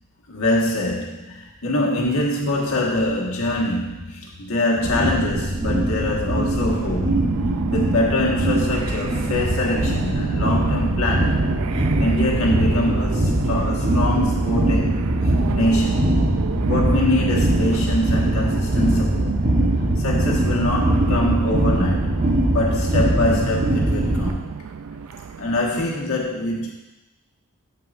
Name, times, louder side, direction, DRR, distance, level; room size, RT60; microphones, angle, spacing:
voice 1, 0.3-7.2 7.7-16.3 16.6-19.4 20.0-22.2 22.5-24.4 25.4-26.7, left 1 dB, 80° left, -2 dB, 1.5 m, -24 dB
sound 1, 4.8-24.3, right 1 dB, 40° right, 1.0 m, -22 dB
sound 2, 6.7-25.9, right 6 dB, 80° right, 0.4 m, -31 dB
8.7 x 7.5 x 2.5 m, 0.99 s
head